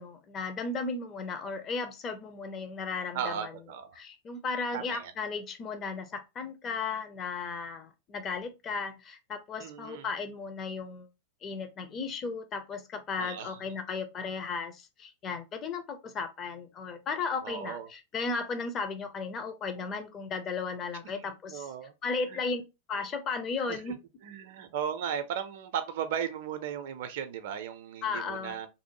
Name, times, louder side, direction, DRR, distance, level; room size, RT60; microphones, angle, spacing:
voice 1, 0.0-3.5 3.9-11.1 11.4-21.7 22.0-22.6 22.9-23.9 28.0-28.6, left 4 dB, 30° left, 0.5 m, -35 dB
voice 2, 3.1-4.0 4.7-5.1 9.6-10.1 13.2-13.6 17.4-17.9 21.1-21.9 22.3-22.4 23.7-23.9 24.2-28.7, right 8 dB, 55° right, 0.4 m, -36 dB
2.6 x 2.1 x 2.9 m
figure-of-eight pair, 90°, 0 cm